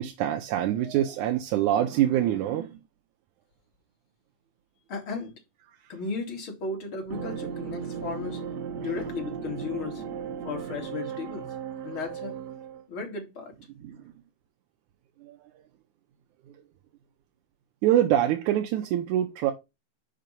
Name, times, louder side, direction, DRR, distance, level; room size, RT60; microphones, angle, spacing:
voice 1, 0.0-2.8 5.8-5.9 8.9-9.0 13.8-14.0 15.2-15.4 17.8-19.5, right 12 dB, 85° right, 2.3 m, -25 dB
voice 2, 4.9-5.4 5.9-8.4 8.8-10.0 10.4-11.5 11.8-12.4 12.9-13.5, left 4 dB, 45° left, 3.3 m, -35 dB
sound 1, 7.1-12.8, right 7 dB, 70° right, 1.0 m, -36 dB
6.4 x 5.7 x 5.3 m
omnidirectional pair, 3.4 m